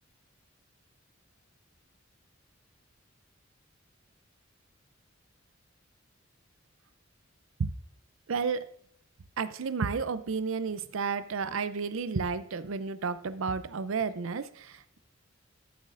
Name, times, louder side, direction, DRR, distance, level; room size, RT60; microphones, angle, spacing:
voice 1, 8.3-8.7 9.4-15.0, right 5 dB, 80° right, 14 dB, 0.6 m, -32 dB
13.5 x 7.3 x 2.5 m, 0.65 s
head